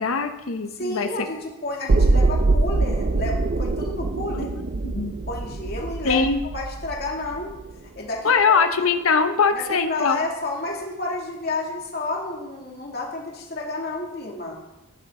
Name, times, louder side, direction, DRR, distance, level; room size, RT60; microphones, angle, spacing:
voice 1, 0.0-1.1 4.4-5.1 6.0-6.4 8.2-10.2, left 5 dB, 80° left, 8 dB, 0.8 m, -22 dB
voice 2, 0.7-4.5 5.3-6.2 6.5-7.5 8.0-8.6 9.5-14.6, left 2 dB, 45° left, -2 dB, 2.4 m, -30 dB
sound 1, 1.9-7.9 8.2-8.3, right 3 dB, 45° right, 0.5 m, -23 dB
14.5 x 10.5 x 3.8 m, 0.98 s
head